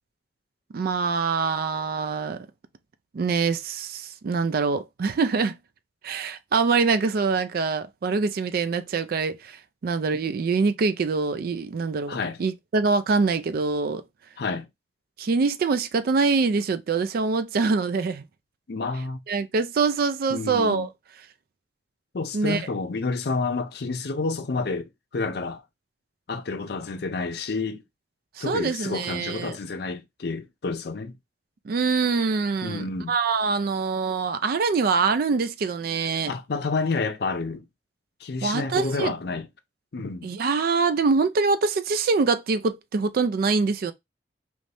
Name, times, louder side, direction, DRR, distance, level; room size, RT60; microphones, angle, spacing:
voice 1, 0.7-2.5 3.1-5.5 6.0-9.6 9.8-14.0 15.2-18.2 19.3-20.9 22.3-22.6 28.4-29.6 31.7-36.3 38.4-39.1 40.2-43.9, right 4 dB, 55° right, 0.4 m, -24 dB
voice 2, 12.1-12.4 14.4-14.7 18.7-19.2 20.3-20.9 22.1-25.6 26.3-27.8 28.4-31.1 32.6-33.1 36.3-37.6 38.2-39.5 39.9-40.3, left 3 dB, 65° left, 0.5 m, -29 dB
3.1 x 2.6 x 3.3 m
head